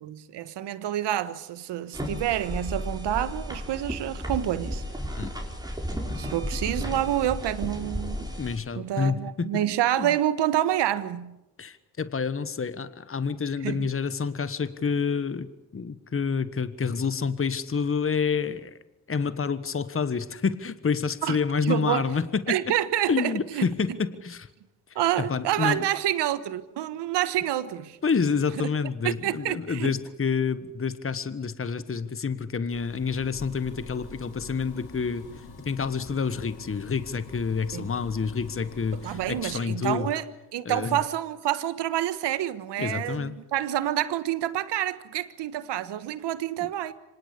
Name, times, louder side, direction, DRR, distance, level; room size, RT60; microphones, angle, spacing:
voice 1, 0.0-4.8 6.1-8.3 8.8-11.4 13.6-13.8 21.2-21.4 21.6-22.1 22.5-23.7 24.9-28.0 28.6-28.7 29.0-29.9 37.7-37.9 38.9-40.2 40.5-46.9, right 12 dB, 80° right, 1.4 m, -28 dB
sound 1, 1.9-8.6, equal, 10° right, 5.4 m, -33 dB
voice 2, 8.4-9.5 10.0-10.1 11.6-15.5 15.7-18.7 19.1-22.6 23.1-24.5 24.9-25.8 28.0-40.1 40.6-41.0 42.8-43.4, left 5 dB, 30° left, 1.4 m, -28 dB
sound 2, 32.7-39.6, left 4 dB, 65° left, 4.4 m, -45 dB
25.5 x 18.5 x 8.3 m
supercardioid pair, 55°, 41 cm